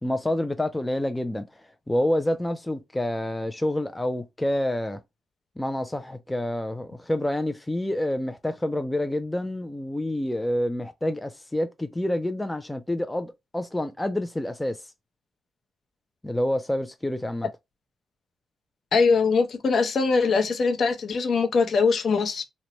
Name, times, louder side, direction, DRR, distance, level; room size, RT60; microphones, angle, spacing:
voice 1, 0.0-5.0 5.6-14.9 16.2-17.5, left 1 dB, 10° left, 0.3 m, -28 dB
voice 2, 18.9-22.4, left 4 dB, 55° left, 0.7 m, -22 dB
3.0 x 2.1 x 4.0 m
cardioid pair, 120°, 0 cm